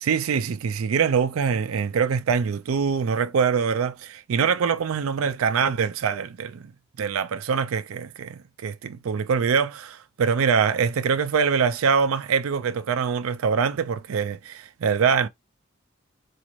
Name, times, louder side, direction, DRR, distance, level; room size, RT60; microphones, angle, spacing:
voice 1, 0.0-6.7 7.0-15.3, right 6 dB, 90° right, 0.4 m, -24 dB
4.1 x 2.5 x 3.0 m
head